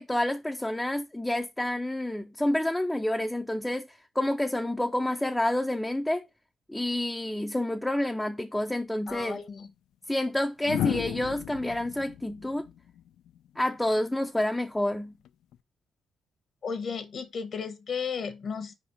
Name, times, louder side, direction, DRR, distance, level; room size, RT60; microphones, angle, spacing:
voice 1, 0.0-3.9 4.2-6.3 6.7-9.4 10.1-12.7 13.6-15.1, left 1 dB, 5° left, 0.5 m, -28 dB
sound 1, 9.1-9.3 10.6-13.7 15.3-15.6, left 11 dB, 80° left, 0.3 m, -35 dB
voice 2, 9.1-9.7 16.6-18.7, left 6 dB, 55° left, 1.0 m, -34 dB
4.9 x 4.2 x 4.6 m
cardioid pair, 90°, 0 cm